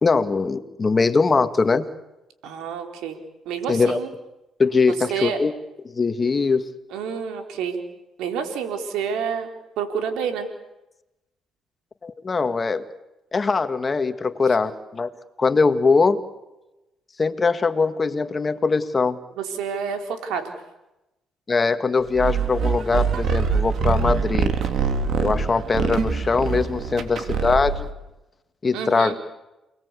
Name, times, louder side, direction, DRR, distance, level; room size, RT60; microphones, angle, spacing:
voice 1, 0.0-1.9 3.7-4.0 4.6-5.5 5.8-6.7 12.0-12.9 13.3-15.1 15.4-16.2 17.2-19.2 21.5-24.5 25.2-27.9 28.6-29.2, left 4 dB, 30° left, 9 dB, 2.1 m, -21 dB
voice 2, 2.4-3.2 3.5-4.1 5.1-5.4 6.9-7.8 8.2-10.5 19.4-20.5 28.7-29.2, right 7 dB, 85° right, 5 dB, 4.2 m, -28 dB
sound 1, 22.2-27.9, right 6 dB, 65° right, 3.3 m, -24 dB
29.0 x 21.0 x 8.5 m, 0.95 s
cardioid pair, 85°, 0 cm